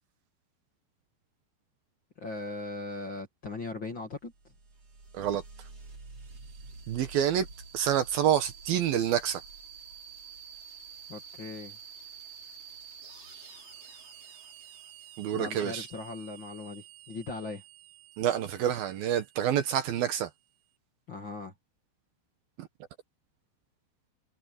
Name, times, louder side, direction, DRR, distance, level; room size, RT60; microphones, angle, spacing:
voice 1, 2.2-4.3 11.1-11.8 15.3-17.6 21.1-21.5, left 3 dB, 35° left, 2.0 m, -39 dB
sound 1, 4.2-20.6, right 6 dB, 35° right, 6.6 m, -49 dB
voice 2, 6.9-7.5 7.7-9.4 15.2-15.9 18.2-20.3 22.6-22.7, right 10 dB, 65° right, 2.8 m, -27 dB
omnidirectional pair, 5.0 m